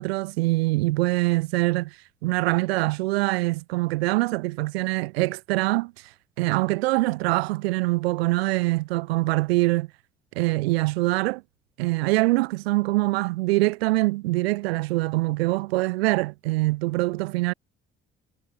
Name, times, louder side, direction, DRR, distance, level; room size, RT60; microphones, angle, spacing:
voice 1, 0.0-2.0 2.2-5.9 6.4-9.9 10.4-11.4 11.8-17.5, right 21 dB, 80° right, 2.3 m, -24 dB
hypercardioid pair, 45°, 30 cm